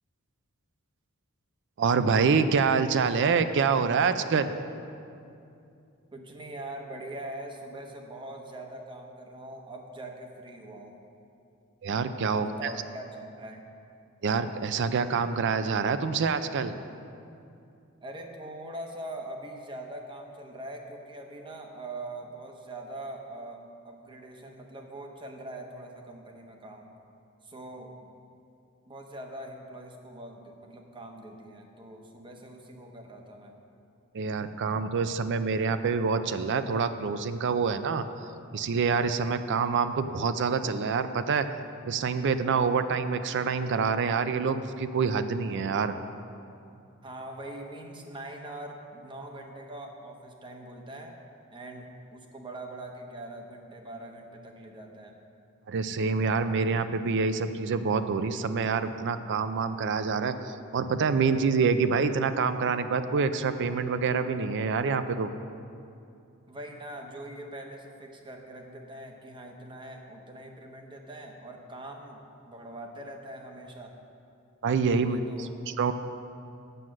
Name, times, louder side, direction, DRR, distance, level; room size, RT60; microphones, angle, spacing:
voice 1, 1.8-4.5 11.8-12.5 14.2-16.7 34.1-38.1 38.5-41.5 41.8-45.9 55.7-65.3 74.6-75.9, right 5 dB, 55° right, 11 dB, 0.4 m, -26 dB
voice 2, 6.1-11.0 12.2-13.7 18.0-26.9 27.4-28.1 28.9-33.6 47.0-51.2 51.5-55.1 66.5-74.0 74.9-75.5, right 1 dB, 25° right, 3 dB, 0.9 m, -42 dB
7.8 x 7.5 x 6.3 m, 2.6 s
head